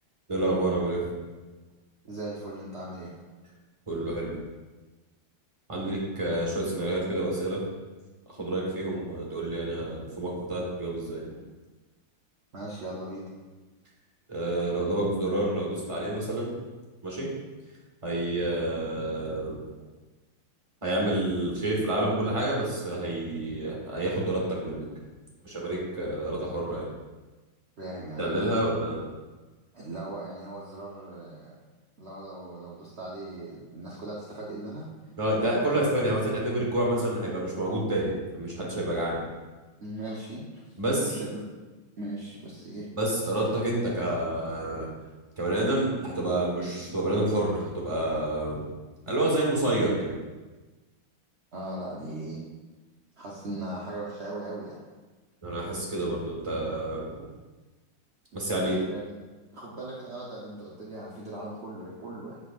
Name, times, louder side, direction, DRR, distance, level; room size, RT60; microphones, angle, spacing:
voice 1, 0.3-1.1 3.9-4.3 5.7-7.6 8.4-11.2 14.3-16.5 17.0-17.3 18.0-19.6 20.8-24.9 25.4-26.9 28.2-29.0 35.2-39.2 40.8-41.1 43.0-44.9 45.4-48.7 49.1-50.1 55.4-57.0 58.3-58.8, right 1 dB, 20° right, -3 dB, 1.1 m, -28 dB
voice 2, 2.1-3.2 12.5-13.3 27.8-28.5 29.7-31.5 32.0-34.9 39.8-40.7 41.0-41.4 42.0-42.9 51.5-52.4 53.2-54.8 58.3-59.2 59.5-62.4, right 1 dB, 55° right, -5 dB, 0.7 m, -38 dB
7.6 x 6.4 x 2.4 m, 1.2 s
omnidirectional pair, 2.2 m